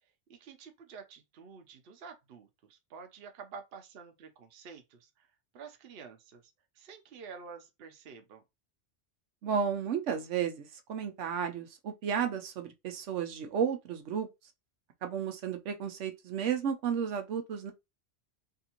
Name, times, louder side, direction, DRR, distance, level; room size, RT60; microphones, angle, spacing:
voice 1, 0.3-5.3 5.5-6.4 6.7-8.4, right 5 dB, 60° right, 0.8 m, -49 dB
voice 2, 9.4-14.3 15.0-17.7, right 7 dB, 90° right, 1.0 m, -33 dB
3.5 x 2.5 x 2.8 m
omnidirectional pair, 1.2 m